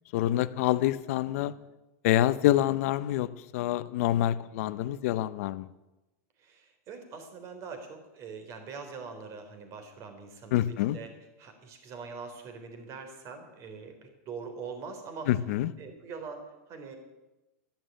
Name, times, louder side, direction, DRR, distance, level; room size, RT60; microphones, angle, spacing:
voice 1, 0.1-1.5 2.0-5.7 10.5-11.0 15.3-15.7, left 13 dB, 60° left, 15 dB, 0.8 m, -26 dB
voice 2, 6.4-11.1 11.4-15.3 15.8-16.9, right 5 dB, 35° right, 5 dB, 3.6 m, -43 dB
12.5 x 11.0 x 9.0 m, 1.0 s
supercardioid pair, 145°, 8 cm